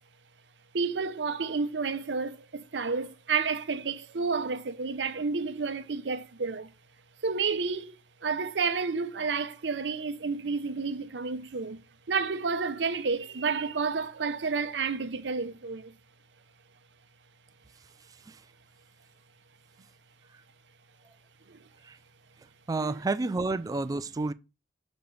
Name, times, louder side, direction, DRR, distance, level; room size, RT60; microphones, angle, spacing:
voice 1, 0.7-6.7 7.2-7.9 8.2-11.8 12.1-15.9 21.5-21.6 22.8-23.0, right 4 dB, 75° right, 0.6 m, -30 dB
voice 2, 22.7-24.3, right 3 dB, 20° right, 0.3 m, -30 dB
6.7 x 5.2 x 3.2 m
head